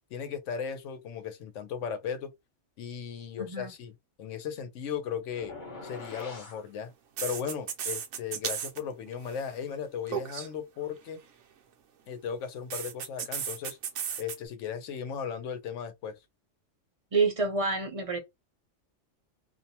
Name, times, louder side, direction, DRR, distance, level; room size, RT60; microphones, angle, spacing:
voice 1, 0.1-2.3 2.8-3.9 4.2-5.6 5.8-6.9 7.2-11.2 12.1-13.8 14.2-16.2, left 7 dB, 85° left, 1.0 m, -36 dB
voice 2, 3.4-3.7 17.1-18.2, right 4 dB, 40° right, 0.6 m, -28 dB
sound 1, 5.4-6.6, left 3 dB, 45° left, 1.0 m, -43 dB
sound 2, 6.0-6.2 7.2-8.8 9.1-9.4 10.1-10.5 12.7-14.4, right 8 dB, 75° right, 0.9 m, -34 dB
2.5 x 2.1 x 2.7 m
omnidirectional pair, 1.2 m